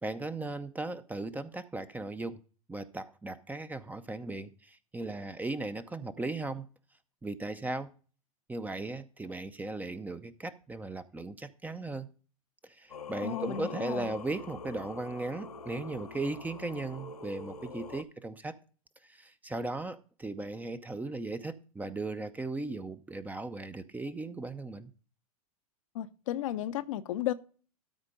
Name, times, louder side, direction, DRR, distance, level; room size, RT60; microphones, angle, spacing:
voice 1, 0.0-2.4 2.7-6.7 7.2-7.9 8.5-12.1 12.6-18.6 19.0-24.9, right 2 dB, 10° right, 0.6 m, -37 dB
Singing, 12.9-18.0, left 4 dB, 90° left, 0.9 m, -44 dB
voice 2, 13.2-14.1 25.9-27.3, left 12 dB, 60° left, 0.7 m, -34 dB
13.0 x 4.4 x 5.2 m
hypercardioid pair, 95°, 19 cm